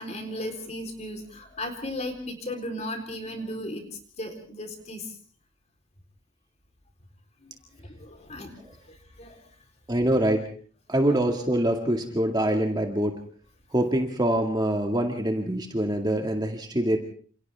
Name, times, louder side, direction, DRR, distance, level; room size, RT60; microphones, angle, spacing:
voice 1, 0.0-3.8 4.2-5.2 7.4-8.5 8.9-9.4, left 1 dB, 35° left, 5 dB, 4.0 m, -36 dB
voice 2, 9.9-10.4 10.9-13.2 13.7-17.0, right 1 dB, 20° right, 3 dB, 2.1 m, -24 dB
29.0 x 28.0 x 3.6 m, 0.44 s
head